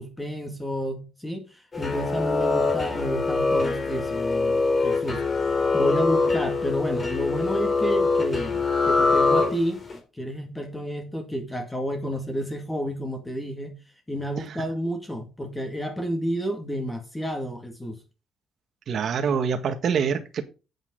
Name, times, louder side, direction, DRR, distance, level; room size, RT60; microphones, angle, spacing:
voice 1, 0.0-5.3 5.7-9.8 10.1-13.8 14.1-18.0, equal, 10° left, 2.2 m, -30 dB
sound 1, 1.7-9.9, left 3 dB, 25° left, 3.5 m, -24 dB
voice 2, 18.9-20.4, right 6 dB, 55° right, 1.7 m, -25 dB
8.8 x 8.8 x 3.9 m
cardioid pair, 125°, 0 cm